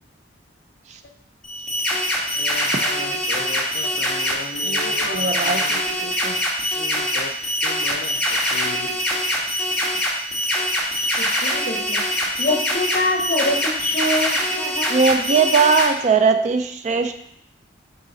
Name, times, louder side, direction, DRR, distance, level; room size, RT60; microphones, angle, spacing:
sound 1, 1.4-15.8, left 1 dB, 5° left, 1.3 m, -23 dB
voice 1, 2.3-5.9 6.7-8.9, left 4 dB, 60° left, 6 dB, 0.5 m, -36 dB
voice 2, 5.1-5.6 6.0-6.4 14.9-17.2, right 5 dB, 35° right, 8 dB, 0.3 m, -19 dB
voice 3, 11.2-12.0 12.4-15.0, left 1 dB, 45° left, 2 dB, 0.9 m, -25 dB
6.4 x 4.0 x 3.8 m, 0.73 s
head